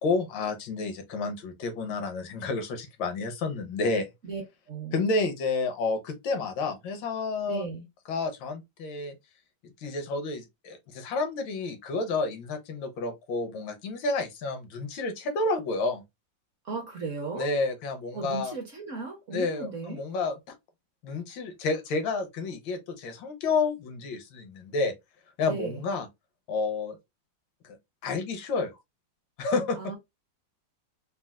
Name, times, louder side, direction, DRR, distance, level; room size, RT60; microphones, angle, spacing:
voice 1, 0.0-4.1 4.9-7.6 8.1-9.1 9.8-16.0 17.4-18.5 19.3-20.4 21.0-24.9 25.4-26.1 26.5-27.0 27.6-27.8 28.0-28.7 29.4-29.8, left 3 dB, 85° left, 1.5 m, -30 dB
voice 2, 4.7-5.1 7.5-7.8 16.6-17.5 18.1-20.0 25.4-25.8 29.8-30.0, right 4 dB, 55° right, 0.9 m, -36 dB
4.2 x 2.0 x 2.3 m
omnidirectional pair, 2.0 m